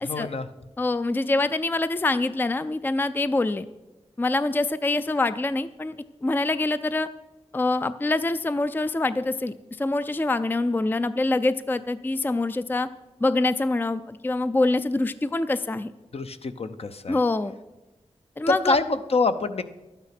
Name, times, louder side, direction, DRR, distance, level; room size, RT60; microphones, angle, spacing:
voice 1, 0.0-0.5 16.1-17.2 18.5-19.6, left 3 dB, 60° left, 9 dB, 0.7 m, -26 dB
voice 2, 0.8-3.7 4.2-5.9 6.2-7.1 7.5-12.9 13.2-15.9 17.1-17.5 18.4-18.8, left 2 dB, 15° left, 13 dB, 0.4 m, -25 dB
12.0 x 8.9 x 5.8 m, 1.1 s
wide cardioid pair, 105°, 11 cm